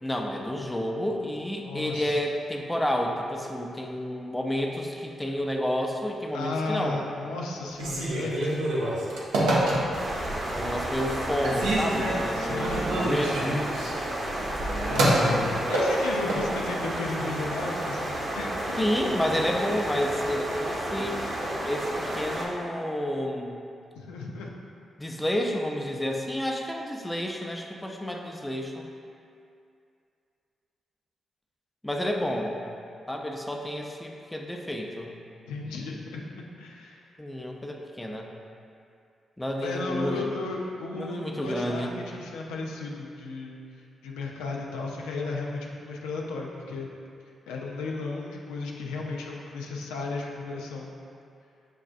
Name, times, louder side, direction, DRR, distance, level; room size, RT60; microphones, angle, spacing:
voice 1, 0.0-7.0 10.5-13.7 18.8-21.2 21.6-23.5 25.0-28.8 31.8-32.6 33.1-35.1 37.2-38.3 39.4-40.3 40.9-41.9, equal, 10° left, 1 dB, 0.5 m, -30 dB
voice 2, 1.6-2.2 6.3-8.6 12.3-13.6 14.9-18.9 23.9-24.5 35.5-37.1 39.6-43.6 44.0-46.9 47.5-50.9, left 3 dB, 90° left, -1 dB, 0.4 m, -35 dB
Telephone, 7.7-10.2 10.7-11.2 11.4-16.5, right 1 dB, 85° right, 0.6 m, -27 dB
sound 1, 9.9-22.4, right 1 dB, 60° right, 0.9 m, -32 dB
6.4 x 2.4 x 2.4 m, 2.5 s
supercardioid pair, 45°, 0 cm